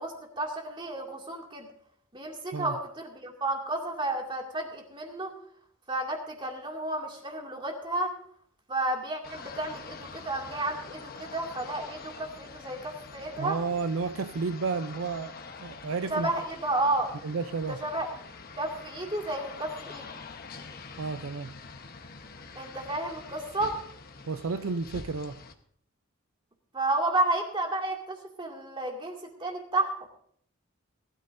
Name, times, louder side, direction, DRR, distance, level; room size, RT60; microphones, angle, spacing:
voice 1, 0.0-1.7 2.1-5.3 5.9-8.1 8.7-13.6 16.1-17.1 17.7-18.1 18.6-20.1 22.6-23.8 26.7-30.0, right 2 dB, 25° right, 2.3 m, -31 dB
sound 1, 9.2-25.5, left 4 dB, 45° left, 1.1 m, -45 dB
voice 2, 13.4-16.3 17.2-17.8 21.0-21.5 24.3-25.4, right 4 dB, 80° right, 0.6 m, -32 dB
20.0 x 13.0 x 2.6 m
head